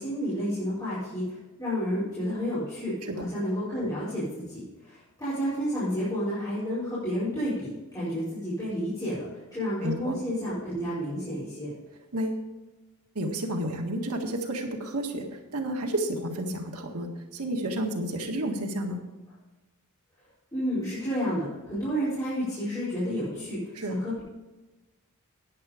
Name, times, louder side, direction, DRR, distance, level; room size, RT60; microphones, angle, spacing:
voice 1, 0.0-11.7 20.5-23.6 23.9-24.2, equal, 15° left, -12 dB, 4.8 m, -31 dB
voice 2, 9.8-10.2 12.1-12.5 13.2-19.1 23.8-24.0, right 1 dB, 90° right, 3 dB, 1.7 m, -31 dB
11.0 x 9.5 x 5.0 m, 1.1 s
head